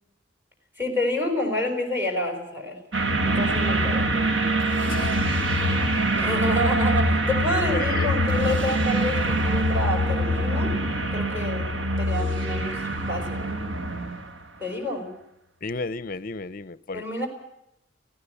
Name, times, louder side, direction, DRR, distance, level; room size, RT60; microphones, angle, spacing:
voice 1, 0.8-2.8 3.2-4.1 6.2-10.7 11.1-12.8 13.1-13.4 14.6-15.1 16.9-17.3, left 1 dB, 10° right, 3 dB, 5.2 m, -28 dB
sound 1, 2.9-14.4, right 1 dB, 65° right, 1.7 m, -24 dB
voice 2, 4.9-5.4 7.7-8.2 15.6-17.0, left 3 dB, 45° left, 17 dB, 0.7 m, -33 dB
17.0 x 16.0 x 9.8 m, 0.82 s
head